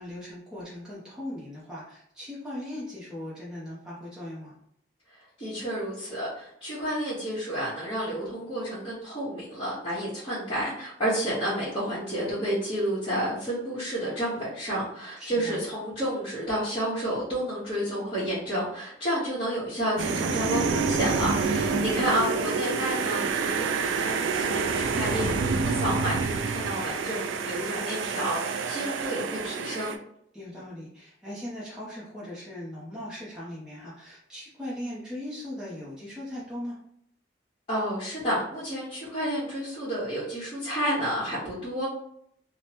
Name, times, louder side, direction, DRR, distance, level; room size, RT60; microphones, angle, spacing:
voice 1, 0.0-4.5 15.2-15.6 21.7-22.1 30.3-36.8, left 1 dB, 5° right, -8 dB, 0.6 m, -39 dB
voice 2, 5.4-30.0 37.7-41.9, equal, 30° left, -13 dB, 1.2 m, -30 dB
sound 1, 20.0-30.0, right 4 dB, 90° right, 0.3 m, -28 dB
3.2 x 2.1 x 2.8 m, 0.70 s
head